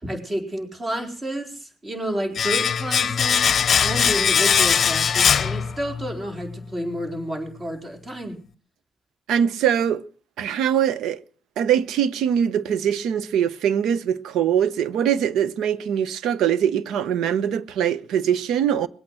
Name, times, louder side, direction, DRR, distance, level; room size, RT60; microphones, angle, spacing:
voice 1, 0.0-3.5 3.8-8.4, equal, 25° right, 4.5 m, -30 dB
Domestic sounds home sounds, 2.3-6.2 6.4-6.6, left 7 dB, 50° left, 0.7 m, -20 dB
voice 2, 9.3-10.0 10.4-11.2 11.6-18.9, right 9 dB, 80° right, 0.9 m, -22 dB
21.0 x 8.8 x 7.6 m
cardioid pair, 90°, 0 cm